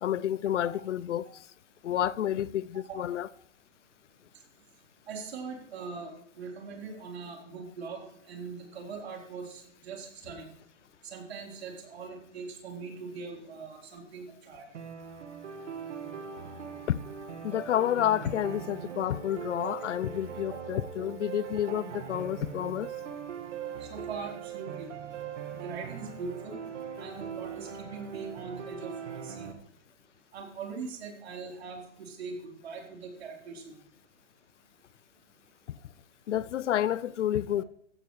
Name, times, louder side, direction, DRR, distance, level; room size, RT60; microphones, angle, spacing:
voice 1, 0.0-1.3 1.8-3.3 16.9-17.0 17.4-22.9 36.3-37.6, left 11 dB, 80° left, 0.6 m, -29 dB
voice 2, 5.1-6.1 6.4-10.5 11.0-14.6 19.6-19.7 20.5-20.8 21.9-22.0 23.8-24.9 25.6-26.6 27.0-29.5 30.3-33.7, right 5 dB, 60° right, 4.0 m, -41 dB
sound 1, 14.7-29.5, right 7 dB, 75° right, 1.8 m, -41 dB
15.0 x 12.5 x 3.2 m
hypercardioid pair, 165°, 36 cm